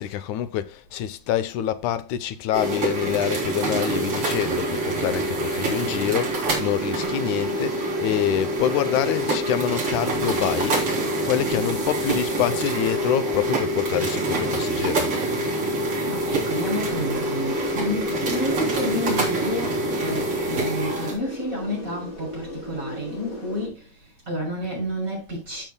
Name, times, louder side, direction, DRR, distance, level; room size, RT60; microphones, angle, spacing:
voice 1, 0.0-10.9 11.2-15.1, left 11 dB, 90° left, 2.3 m, -26 dB
sound 1, 2.5-21.2, right 1 dB, 50° right, 4.1 m, -25 dB
voice 2, 16.1-25.6, equal, 25° right, 6.9 m, -30 dB
sound 2, 16.5-23.7, left 2 dB, 40° left, 3.7 m, -36 dB
13.0 x 8.3 x 2.2 m
omnidirectional pair, 3.3 m